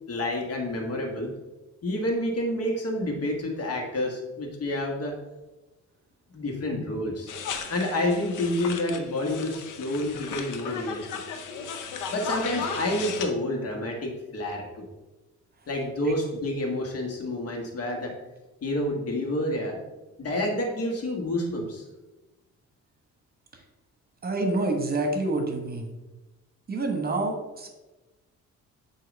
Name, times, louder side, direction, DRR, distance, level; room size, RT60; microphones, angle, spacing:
voice 1, 0.1-1.3 1.8-5.1 6.3-7.3 7.7-11.1 12.1-14.9 15.7-18.1 18.6-19.8 20.2-21.8, left 1 dB, 50° left, 1 dB, 1.5 m, -29 dB
sound 1, 7.3-13.3, left 6 dB, 85° left, 0.7 m, -36 dB
voice 2, 24.2-25.9 26.7-27.7, right 2 dB, 30° right, 4 dB, 1.1 m, -27 dB
7.6 x 2.8 x 5.1 m, 1.1 s
cardioid pair, 90°, 30 cm